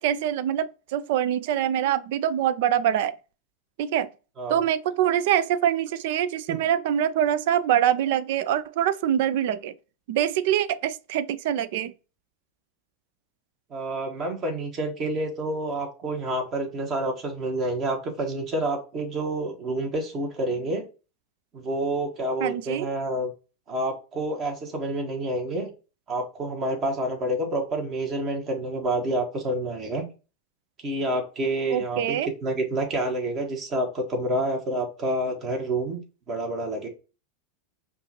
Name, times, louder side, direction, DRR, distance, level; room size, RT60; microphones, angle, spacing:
voice 1, 0.0-3.2 3.8-4.1 4.5-9.7 10.1-11.9 22.4-22.9 31.7-32.3, right 10 dB, 60° right, 0.4 m, -24 dB
voice 2, 13.7-20.8 21.5-23.3 23.7-25.7 26.1-30.0 30.8-36.0 36.3-36.9, right 1 dB, 40° right, 1.5 m, -28 dB
5.5 x 2.5 x 2.9 m
hypercardioid pair, 90°, 0 cm